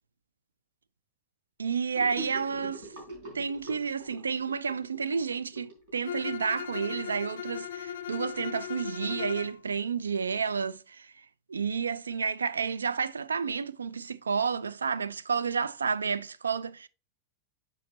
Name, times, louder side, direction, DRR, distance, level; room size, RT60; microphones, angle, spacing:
voice 1, 1.6-2.9 3.3-11.1 11.5-16.9, right 6 dB, 75° right, 0.3 m, -31 dB
Gurgling / Sink (filling or washing), 1.9-6.4, right 2 dB, 50° right, 3.6 m, -44 dB
Bowed string instrument, 6.0-9.6, left 9 dB, 60° left, 0.4 m, -37 dB
7.5 x 4.2 x 3.9 m
figure-of-eight pair, 90°, 0 cm